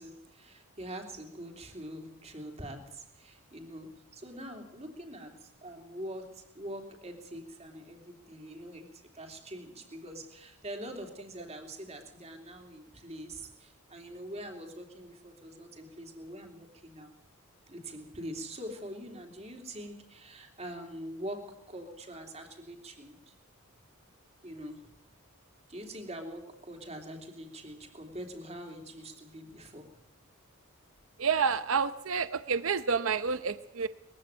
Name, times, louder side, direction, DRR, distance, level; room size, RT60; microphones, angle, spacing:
voice 1, 0.0-17.1 17.7-23.3 24.4-24.9 25.7-29.9, right 1 dB, 30° right, 4 dB, 3.0 m, -44 dB
voice 2, 31.2-33.9, right 6 dB, 60° right, 13 dB, 0.7 m, -29 dB
21.0 x 15.5 x 9.0 m, 0.79 s
head